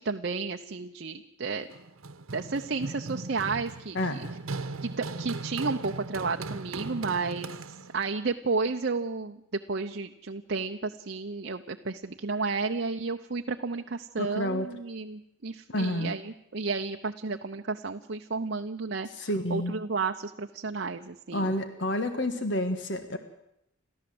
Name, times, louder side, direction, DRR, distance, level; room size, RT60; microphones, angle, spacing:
voice 1, 0.0-1.7 2.3-4.2 4.8-7.5 7.9-21.5, right 4 dB, 55° right, 3 dB, 0.8 m, -32 dB
Run, 1.7-8.1, right 3 dB, 90° right, 1.0 m, -38 dB
voice 2, 3.9-4.3 14.2-14.7 15.7-16.1 19.1-19.7 21.3-23.2, left 1 dB, 60° left, 8 dB, 1.7 m, -29 dB
29.0 x 13.5 x 7.8 m, 0.81 s
head